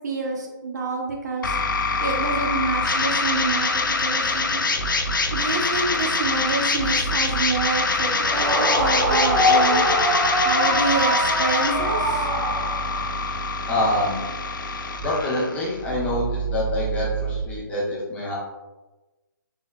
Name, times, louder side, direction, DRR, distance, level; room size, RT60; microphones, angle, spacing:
voice 1, 0.0-1.5 2.0-4.6 5.3-9.8 10.4-12.3, right 4 dB, 60° right, 0 dB, 0.8 m, -27 dB
sound 1, 1.4-17.4, left 3 dB, 75° left, 0.5 m, -24 dB
Yell / Screaming, 8.2-13.1, equal, 15° right, 1.4 m, -23 dB
voice 2, 13.7-14.2 15.0-18.3, left 1 dB, 10° left, -6 dB, 0.9 m, -26 dB
4.0 x 3.7 x 2.2 m, 1.1 s
figure-of-eight pair, 140°, 11 cm